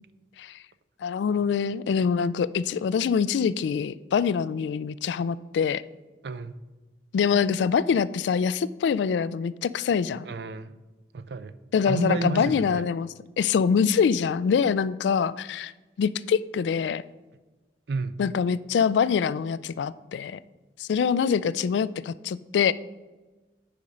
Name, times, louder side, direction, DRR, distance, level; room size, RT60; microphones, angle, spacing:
voice 1, 1.0-5.8 7.1-10.2 11.7-13.1 13.4-15.7 16.0-17.0 18.2-20.4 20.8-22.7, left 6 dB, 80° left, 17 dB, 0.3 m, -24 dB
voice 2, 6.2-6.6 10.2-10.7 11.1-11.5 11.8-12.9 17.9-18.2, right 3 dB, 65° right, 14 dB, 0.4 m, -31 dB
8.5 x 5.1 x 5.3 m, 1.2 s
head